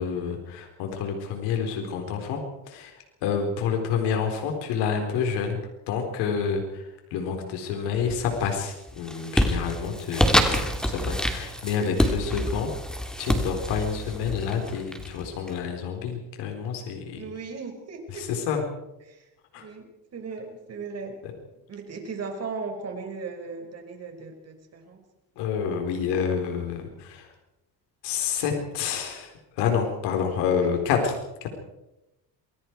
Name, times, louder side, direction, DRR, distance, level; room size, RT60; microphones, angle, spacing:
voice 1, 0.0-2.4 2.7-2.9 3.2-5.6 5.9-6.8 7.1-12.7 13.2-17.2 18.1-18.6 19.5-19.6 25.4-27.3 28.0-29.3 29.6-31.5, left 6 dB, 90° left, 3 dB, 4.3 m, -28 dB
sound 1, 8.0-8.5 8.9-15.5, equal, ahead, 2.9 m, -26 dB
voice 2, 10.1-10.4 17.1-18.3 19.1-19.3 19.5-21.1 21.7-25.0 30.6-30.7, right 4 dB, 40° right, 4 dB, 5.8 m, -37 dB
27.5 x 21.0 x 4.7 m, 0.95 s
cardioid pair, 130°, 40 cm